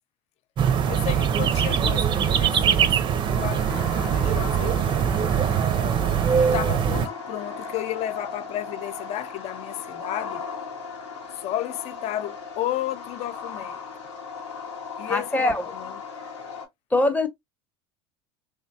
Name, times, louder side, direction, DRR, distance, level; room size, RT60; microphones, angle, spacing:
sound 1, 0.6-7.1, right 8 dB, 35° right, 0.5 m, -22 dB
voice 1, 0.9-5.1 6.4-10.5 11.3-13.8 15.0-16.0, left 13 dB, 50° left, 0.4 m, -33 dB
sound 2, 3.3-16.7, left 4 dB, 90° left, 1.0 m, -37 dB
voice 2, 15.0-15.7 16.9-17.3, left 2 dB, 10° left, 0.7 m, -22 dB
3.2 x 2.1 x 2.6 m
hypercardioid pair, 90°, 14 cm